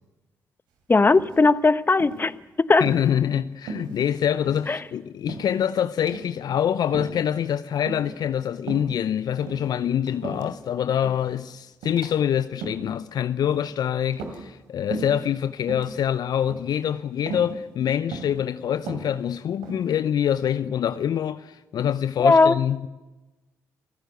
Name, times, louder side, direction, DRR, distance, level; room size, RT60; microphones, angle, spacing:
voice 1, 0.9-2.3 2.6-2.8 4.7-4.8 22.2-22.6, left 3 dB, 25° left, 1.0 m, -18 dB
sound 1, 1.2-1.6 2.0-2.3 2.8-3.1 3.7-4.2 4.5-4.7 5.3-5.6 6.0-6.3 6.9-7.2 7.9-8.2 8.6-8.9 9.4-10.6 11.0-11.3 11.8-12.1 12.5-12.9 13.4-13.7 14.1-14.6 14.9-15.2 15.6-15.9 16.5-16.8 17.3-17.5 18.1-18.4 18.8-19.9, right 4 dB, 80° right, 3.3 m, -36 dB
voice 2, 2.8-22.9, left 9 dB, 60° left, 0.7 m, -25 dB
26.5 x 16.0 x 8.1 m
hypercardioid pair, 45°, 8 cm